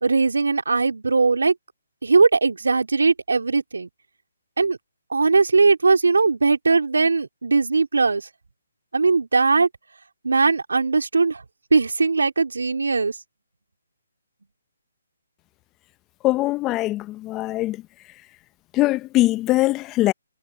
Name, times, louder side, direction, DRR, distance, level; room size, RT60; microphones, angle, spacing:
voice 1, 0.0-1.5 2.0-3.9 4.6-4.8 5.1-8.3 8.9-9.7 10.2-11.4 11.7-13.1, right 4 dB, 80° right, 3.2 m, -19 dB
voice 2, 16.2-17.8 18.7-20.1, left 17 dB, 20° left, 0.9 m, -22 dB
hypercardioid pair, 145°, 0 cm